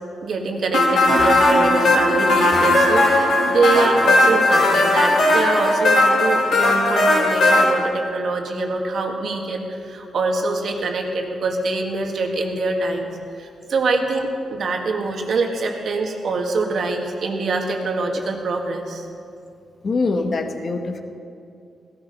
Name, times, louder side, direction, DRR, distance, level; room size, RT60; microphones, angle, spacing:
voice 1, 0.2-13.1 13.4-19.1, right 3 dB, 65° right, 2 dB, 1.9 m, -24 dB
sound 1, 0.7-7.6, left 2 dB, 85° left, 4.6 m, -17 dB
sound 2, 0.7-6.3, right 3 dB, 85° right, 1.1 m, -30 dB
voice 2, 19.8-21.0, left 3 dB, 50° left, 6 dB, 1.3 m, -23 dB
16.0 x 14.0 x 5.4 m, 2.5 s
cardioid pair, 90°, 0 cm